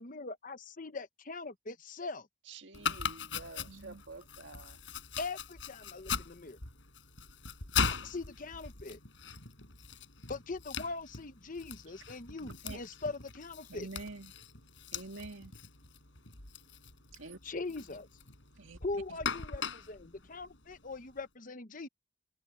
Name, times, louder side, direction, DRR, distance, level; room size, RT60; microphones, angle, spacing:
voice 1, 0.0-2.3 5.2-6.6 8.0-9.0 10.3-13.9 17.4-18.1 18.8-21.9, left 3 dB, 45° left, 1.0 m, -41 dB
voice 2, 2.5-4.8, right 3 dB, 65° right, 1.6 m, -50 dB
Domestic sounds home sounds, 2.7-21.2, left 6 dB, 70° left, 4.7 m, -40 dB
voice 3, 3.7-4.0 12.4-12.8 13.7-14.3 14.9-15.5 17.1-17.4 18.6-18.8 19.1-19.2, right 2 dB, 85° right, 2.4 m, -46 dB
head